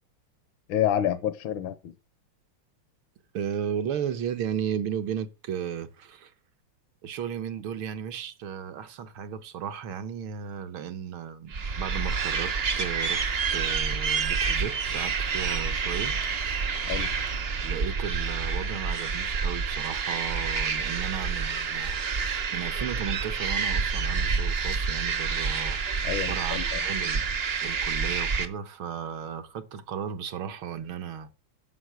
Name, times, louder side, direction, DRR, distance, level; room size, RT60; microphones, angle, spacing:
voice 1, 0.7-1.9 16.9-17.1 26.0-26.8, left 10 dB, 70° left, 1.5 m, -28 dB
voice 2, 3.3-6.3 7.0-13.2 13.5-16.2 17.6-22.0 22.2-25.8 26.3-27.3 27.6-31.3, right 8 dB, 75° right, 1.8 m, -35 dB
sound 1, 11.5-28.5, right 5 dB, 45° right, 0.8 m, -28 dB
9.7 x 6.3 x 7.9 m
omnidirectional pair, 2.4 m